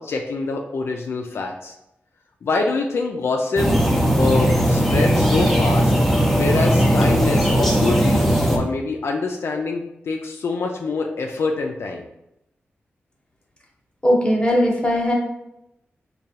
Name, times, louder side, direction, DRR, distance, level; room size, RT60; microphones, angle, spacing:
voice 1, 0.0-1.7 2.4-3.7 4.2-5.9 6.3-12.0, left 3 dB, 75° left, 2 dB, 0.3 m, -25 dB
sound 1, 3.6-8.6, equal, 5° left, 0.6 m, -18 dB
voice 2, 14.0-15.1, equal, 20° left, -1 dB, 0.9 m, -18 dB
4.8 x 2.2 x 2.7 m, 0.86 s
wide cardioid pair, 75°, 4 cm